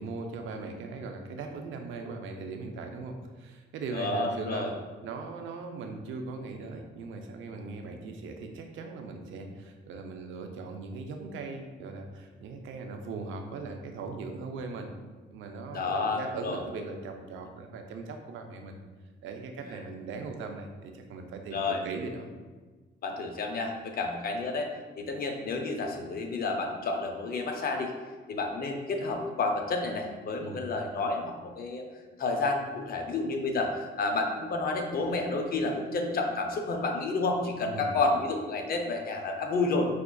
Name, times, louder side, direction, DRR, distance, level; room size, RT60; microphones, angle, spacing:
voice 1, 0.0-4.7 5.0-14.9 15.3-18.8 19.2-22.3 30.4-30.7 37.7-38.0, right 4 dB, 80° right, 4 dB, 0.5 m, -39 dB
voice 2, 3.9-4.7 15.7-16.6 21.5-21.9 23.0-24.7 25.0-27.9 28.3-31.8 32.2-39.9, left 3 dB, 50° left, 3 dB, 0.6 m, -30 dB
5.0 x 2.4 x 2.2 m, 1.3 s
cardioid pair, 90°, 20 cm